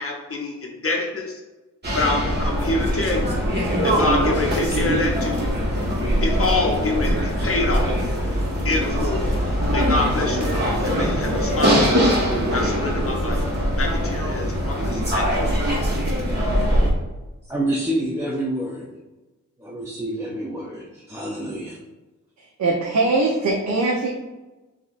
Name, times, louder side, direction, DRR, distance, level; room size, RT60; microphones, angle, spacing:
voice 1, 0.0-1.4 1.9-3.4 3.8-5.5 6.2-8.0 8.6-9.3 9.7-10.6 10.8-12.2 12.5-13.4 13.8-15.5, left 2 dB, 45° left, 1 dB, 0.6 m, -26 dB
sound 1, 1.8-16.9, equal, 35° right, 1.3 m, -22 dB
voice 2, 17.4-18.9 19.6-21.8, right 1 dB, 10° right, -4 dB, 0.5 m, -27 dB
voice 3, 22.4-24.1, right 2 dB, 65° right, -2 dB, 0.7 m, -21 dB
6.8 x 2.6 x 2.5 m, 1.1 s
wide cardioid pair, 100°, 31 cm